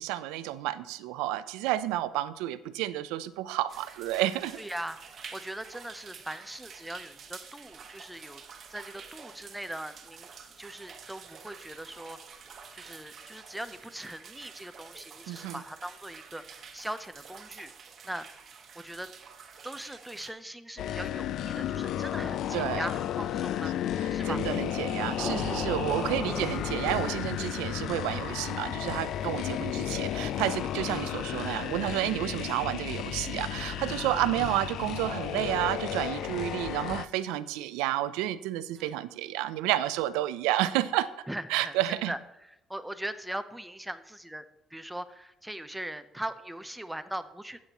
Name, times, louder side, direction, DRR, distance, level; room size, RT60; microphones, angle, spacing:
voice 1, 0.0-4.6 15.3-15.6 22.5-22.9 24.0-41.1 41.5-42.1, right 14 dB, 90° right, 15 dB, 0.5 m, -30 dB
sound 1, 3.7-20.3, right 6 dB, 45° right, 1.3 m, -49 dB
voice 2, 4.6-5.0 5.3-8.4 8.7-10.3 10.6-12.2 12.7-17.7 18.0-18.3 18.8-19.1 19.6-23.7 24.1-24.4 25.8-26.1 29.2-29.3 30.7-30.9 34.1-34.3 38.8-39.0 41.3-41.8 42.1-42.2 42.7-44.4 44.7-47.6, right 1 dB, 5° right, 11 dB, 0.7 m, -40 dB
sound 2, 20.8-37.1, left 11 dB, 65° left, 0.4 m, -33 dB
Thunder / Rain, 23.6-35.2, left 3 dB, 35° left, 1.6 m, -42 dB
13.5 x 8.5 x 3.0 m, 0.85 s
cardioid pair, 100°, 0 cm